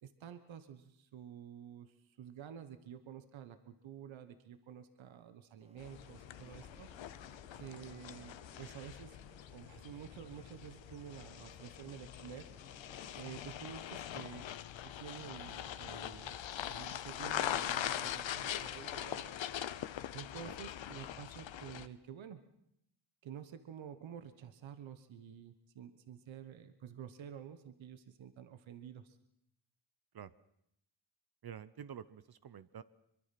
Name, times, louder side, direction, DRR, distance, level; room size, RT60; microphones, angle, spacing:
voice 1, 0.0-6.9 7.5-9.2 9.5-12.5 13.2-14.5 14.8-16.4 16.7-19.3 20.1-22.4 23.2-29.2, right 9 dB, 90° right, 10 dB, 1.3 m, -50 dB
sound 1, 5.6-13.3, right 1 dB, 15° right, 1.4 m, -63 dB
sound 2, 5.8-21.9, left 11 dB, 80° left, 1.0 m, -42 dB
voice 2, 31.4-32.8, right 8 dB, 55° right, 15 dB, 0.8 m, -48 dB
23.0 x 22.5 x 5.9 m, 0.77 s
cardioid pair, 75°, 45 cm